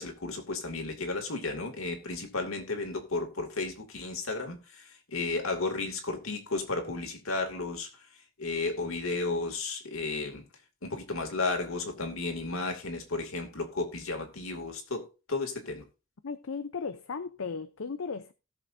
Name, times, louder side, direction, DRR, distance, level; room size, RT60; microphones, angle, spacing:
voice 1, 0.0-10.4 10.8-15.8, left 3 dB, 90° left, 2.5 m, -33 dB
voice 2, 16.2-18.3, left 5 dB, 75° left, 0.6 m, -36 dB
18.0 x 6.8 x 2.7 m
head